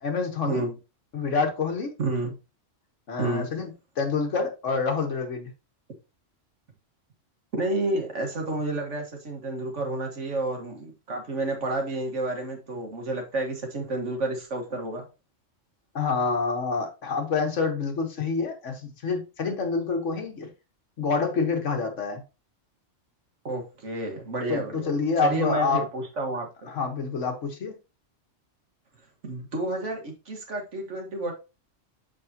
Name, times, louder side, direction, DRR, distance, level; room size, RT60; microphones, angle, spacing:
voice 1, 0.0-0.6 1.1-1.9 3.1-3.7 4.0-5.5 15.9-20.5 21.0-22.2 24.5-25.8 26.7-27.7, left 4 dB, 70° left, 3 dB, 1.6 m, -27 dB
voice 2, 2.0-2.4 3.2-3.5 7.5-15.0 23.4-24.9 25.2-26.5 29.2-31.3, right 2 dB, 70° right, 2 dB, 1.8 m, -30 dB
6.6 x 5.1 x 2.8 m, 0.29 s
omnidirectional pair, 1.3 m